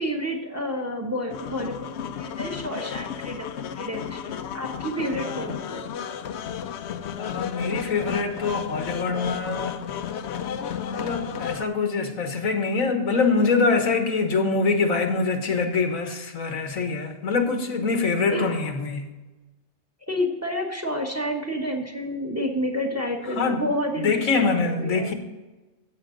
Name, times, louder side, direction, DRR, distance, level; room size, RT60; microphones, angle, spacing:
voice 1, 0.0-5.9 18.3-18.5 20.1-25.1, equal, 10° right, 1.2 m, -30 dB
sound 1, 1.3-11.6, left 8 dB, 65° left, 0.8 m, -33 dB
voice 2, 7.2-9.8 10.9-19.1 23.4-23.6 24.0-25.1, left 4 dB, 90° left, 1.7 m, -24 dB
14.0 x 8.1 x 3.9 m
omnidirectional pair, 1.4 m